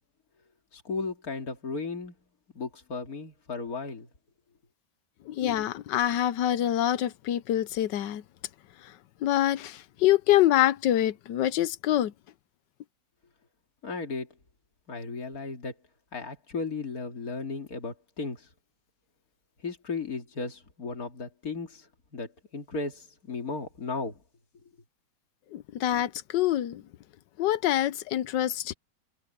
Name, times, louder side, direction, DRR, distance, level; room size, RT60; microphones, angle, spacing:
voice 1, 0.7-2.2 2.5-4.1 13.8-14.3 14.9-15.7 16.1-18.5 19.6-24.2, left 4 dB, 55° left, 3.0 m, -35 dB
voice 2, 5.3-8.2 9.2-12.1 25.5-26.8 27.4-28.7, left 12 dB, 90° left, 1.4 m, -25 dB
omnidirectional pair, 1.8 m